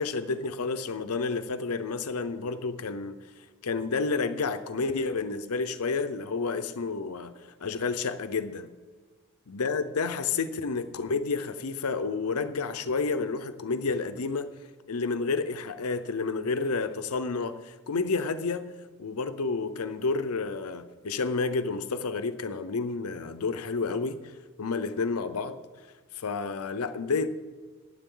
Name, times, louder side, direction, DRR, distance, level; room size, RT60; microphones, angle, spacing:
voice 1, 0.0-3.2 3.6-7.3 7.6-8.7 9.5-14.5 14.9-18.6 19.0-24.2 24.6-25.6 26.2-27.3, left 4 dB, 85° left, 0.7 m, -30 dB
15.5 x 9.9 x 3.8 m
head